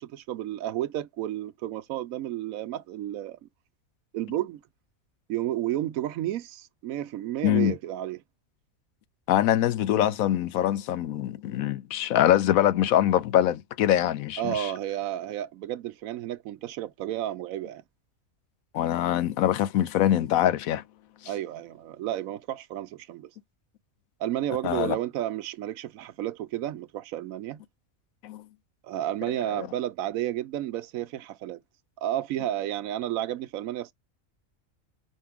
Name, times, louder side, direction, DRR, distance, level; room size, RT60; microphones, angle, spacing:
voice 1, 0.0-3.5 4.1-4.6 5.3-8.2 14.4-17.8 21.3-23.3 24.2-27.6 28.8-31.6 32.0-33.9, right 12 dB, 85° right, 1.0 m, -32 dB
voice 2, 7.4-7.7 9.3-14.7 18.7-20.8 24.6-25.0 28.2-28.4 29.6-29.7, left 12 dB, 85° left, 1.1 m, -24 dB
5.3 x 2.6 x 3.5 m
omnidirectional pair, 1.4 m